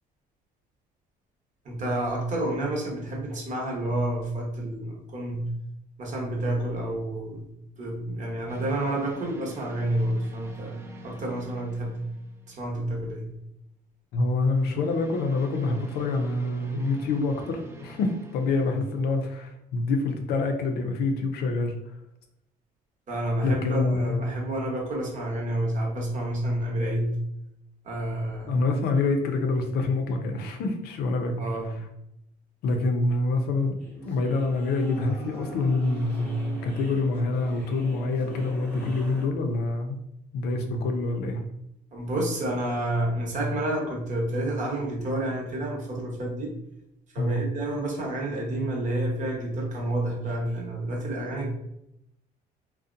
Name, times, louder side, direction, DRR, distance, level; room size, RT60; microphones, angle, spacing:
voice 1, 1.6-5.5 6.0-7.5 7.8-10.8 11.0-12.0 12.5-13.3 23.1-27.2 27.8-28.6 31.4-31.8 41.9-46.6 47.1-51.5, right 1 dB, 45° right, -1 dB, 0.9 m, -29 dB
sound 1, 8.5-12.9 14.5-19.3, right 1 dB, 15° right, 0.4 m, -47 dB
voice 2, 14.1-21.8 23.4-24.2 28.5-31.3 32.6-33.8 34.0-40.0 40.3-41.4 47.2-47.4, left 3 dB, 70° left, 5 dB, 0.5 m, -26 dB
sound 2, 33.8-39.3, right 3 dB, 10° left, 0.8 m, -41 dB
2.6 x 2.1 x 2.4 m, 0.79 s
cardioid pair, 110°, 17 cm